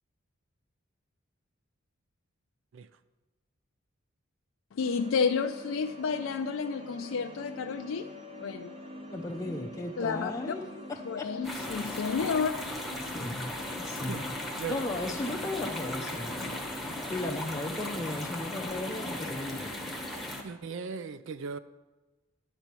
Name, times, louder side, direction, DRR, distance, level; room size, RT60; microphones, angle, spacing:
voice 1, 4.7-8.1 8.4-8.7 10.0-10.6 11.1-12.6, left 5 dB, 70° left, 0.4 m, -31 dB
sound 1, 4.8-20.3, left 1 dB, 25° right, 0.8 m, -46 dB
voice 2, 9.1-10.6 10.9-11.3 13.0-13.5 13.8-14.3 14.7-19.9, left 2 dB, 15° left, 0.5 m, -36 dB
sound 2, 11.4-20.4, left 1 dB, ahead, 1.0 m, -37 dB
voice 3, 14.1-15.4 16.5-16.6 20.4-21.6, right 5 dB, 60° right, 0.4 m, -39 dB
11.5 x 4.4 x 8.2 m
head